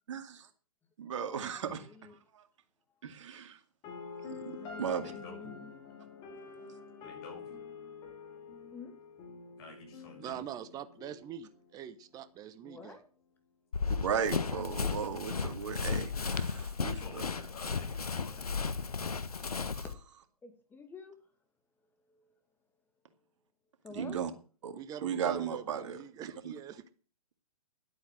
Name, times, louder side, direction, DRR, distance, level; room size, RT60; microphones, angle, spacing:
voice 1, 0.1-0.5 1.0-1.9 2.3-2.4 3.0-3.6 4.3-5.1 14.0-17.3 19.4-19.8 23.9-24.3 24.6-26.0 26.4-26.5, right 7 dB, 55° right, 7 dB, 2.2 m, -36 dB
voice 2, 1.4-2.2 4.6-5.7 8.7-9.0 12.6-13.1 19.8-19.9 20.4-21.2 22.1-22.3 23.8-24.2, left 4 dB, 10° left, 7 dB, 2.2 m, -49 dB
sound 1, 3.8-11.8, left 5 dB, 25° left, 2.9 m, -47 dB
voice 3, 5.0-5.5 7.0-7.6 9.6-10.4 16.7-18.5, left 3 dB, 45° left, 1 dB, 6.9 m, -51 dB
voice 4, 10.2-13.0 24.7-26.8, right 9 dB, 20° right, 12 dB, 1.1 m, -44 dB
Run, 13.7-19.9, left 5 dB, 80° left, 1.3 m, -34 dB
11.5 x 8.7 x 7.6 m, 0.40 s
figure-of-eight pair, 120°, 19 cm